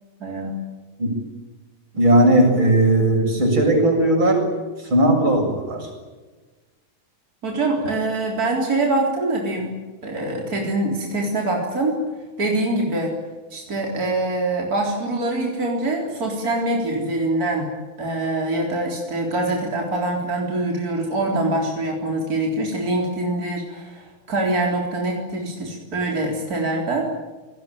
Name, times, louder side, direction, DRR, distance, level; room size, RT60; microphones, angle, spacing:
voice 1, 0.2-0.6 7.4-9.8 10.0-12.0 12.4-13.1 13.5-17.7 18.0-27.0, right 2 dB, 45° right, 0 dB, 4.4 m, -24 dB
voice 2, 1.9-4.4 4.9-5.9, right 1 dB, 75° right, 2 dB, 8.1 m, -17 dB
27.5 x 19.5 x 9.3 m, 1.3 s
omnidirectional pair, 2.2 m